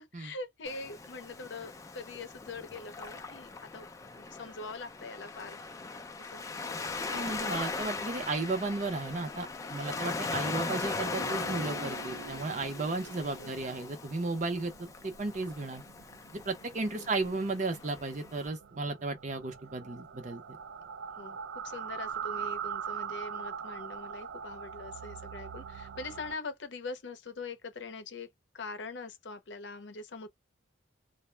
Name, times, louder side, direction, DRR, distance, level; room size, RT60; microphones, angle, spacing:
voice 1, 0.0-3.9 4.2-5.6 6.3-6.5 13.0-13.5 16.9-17.3 21.2-28.3 28.5-30.3, left 3 dB, 75° left, 0.6 m, -43 dB
Waves surf, 0.7-18.5, left 4 dB, 15° left, 0.3 m, -39 dB
voice 2, 7.1-15.8 16.3-20.4, right 3 dB, 40° right, 0.6 m, -34 dB
sound 1, 11.0-26.4, right 7 dB, 90° right, 0.3 m, -43 dB
2.0 x 2.0 x 3.1 m
head